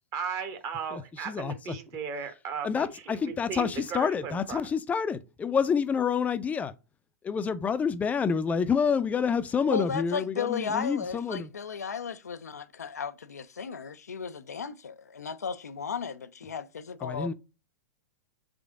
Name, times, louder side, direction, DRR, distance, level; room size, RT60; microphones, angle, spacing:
voice 1, 0.1-4.6, right 7 dB, 40° right, 1.0 m, -36 dB
voice 2, 0.9-1.8 2.6-6.7 7.2-11.5 17.0-17.3, left 6 dB, 20° left, 0.4 m, -28 dB
voice 3, 9.7-17.3, left 6 dB, 85° left, 0.4 m, -35 dB
3.7 x 3.3 x 3.5 m
hypercardioid pair, 105°, 8 cm